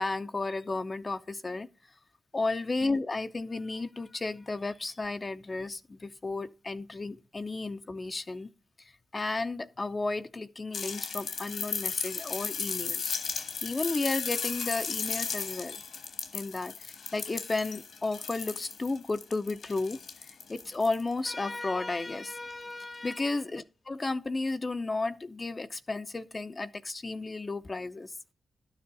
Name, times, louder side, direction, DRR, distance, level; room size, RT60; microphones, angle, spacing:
voice 1, 0.0-1.7 2.3-8.5 9.1-15.8 16.3-20.0 20.5-28.1, left 3 dB, 30° left, 0.5 m, -33 dB
sound 1, 10.7-21.1 22.5-22.6, left 5 dB, 75° left, 1.4 m, -35 dB
12.0 x 6.9 x 4.0 m
cardioid pair, 75°, 0 cm